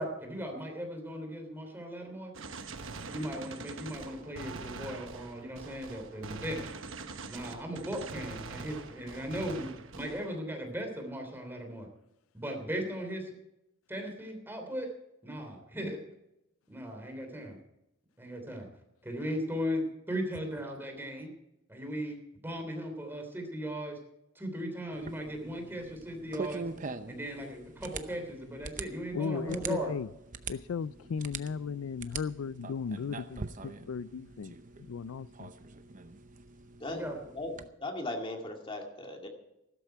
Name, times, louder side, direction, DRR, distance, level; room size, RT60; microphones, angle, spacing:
voice 1, 0.0-2.3 3.1-6.7 7.3-9.7 9.9-11.9 12.3-13.2 13.9-14.9 15.2-16.0 16.7-17.6 18.2-18.7 19.0-21.3 21.7-22.2 22.4-24.0 24.3-26.6 27.1-29.9 36.9-37.2, equal, 10° right, 3.2 m, -37 dB
Gunshot gunfire, 2.3-10.4, right 4 dB, 70° right, 1.1 m, -44 dB
sound 1, 24.9-37.7, right 4 dB, 40° right, 0.7 m, -44 dB
voice 2, 29.1-30.1 30.5-34.5 34.9-35.5, left 6 dB, 90° left, 0.4 m, -36 dB
voice 3, 36.8-37.5 37.8-39.3, left 2 dB, 25° left, 2.2 m, -38 dB
15.0 x 13.0 x 4.6 m
head